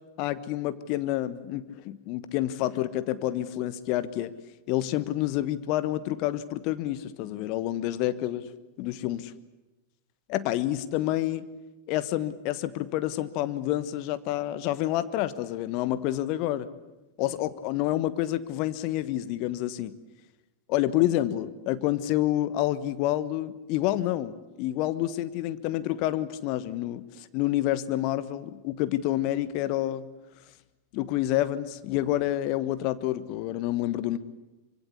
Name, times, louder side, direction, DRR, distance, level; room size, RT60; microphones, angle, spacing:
voice 1, 0.2-4.3 4.7-8.4 8.8-9.2 10.3-11.4 11.9-16.7 17.2-19.9 20.7-30.1 30.9-34.2, left 14 dB, 45° left, 14 dB, 1.2 m, -28 dB
25.0 x 25.0 x 8.4 m, 1.1 s
figure-of-eight pair, 90°, 0 cm